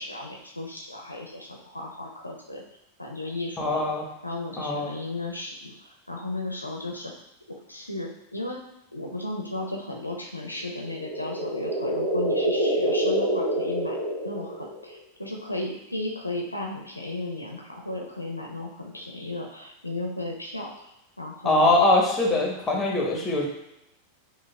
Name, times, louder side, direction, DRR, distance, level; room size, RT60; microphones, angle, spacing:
voice 1, 0.0-2.6 3.0-3.9 4.2-7.1 7.7-8.6 8.9-14.0 14.2-21.8, left 2 dB, 85° left, 0 dB, 0.6 m, -35 dB
voice 2, 3.6-4.0 4.6-4.9 21.4-23.5, left 2 dB, 15° left, -1 dB, 0.9 m, -22 dB
sound 1, 10.7-14.9, right 1 dB, 65° right, 1.2 m, -27 dB
6.2 x 2.2 x 2.2 m, 0.85 s
figure-of-eight pair, 90°, 0 cm